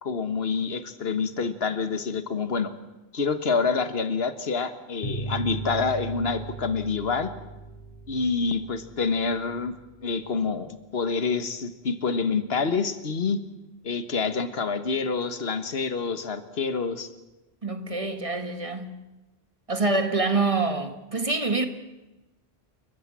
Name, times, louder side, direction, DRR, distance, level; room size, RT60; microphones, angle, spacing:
voice 1, 0.0-2.7 3.1-7.3 8.1-9.8 10.0-13.4 13.8-17.1, left 4 dB, 75° left, 11 dB, 1.6 m, -27 dB
sound 1, 5.0-10.2, right 3 dB, 40° left, 4.4 m, -38 dB
voice 2, 17.6-19.0 19.7-21.7, right 3 dB, 35° right, 8 dB, 1.6 m, -26 dB
29.5 x 14.5 x 7.5 m, 1.1 s
omnidirectional pair, 1.0 m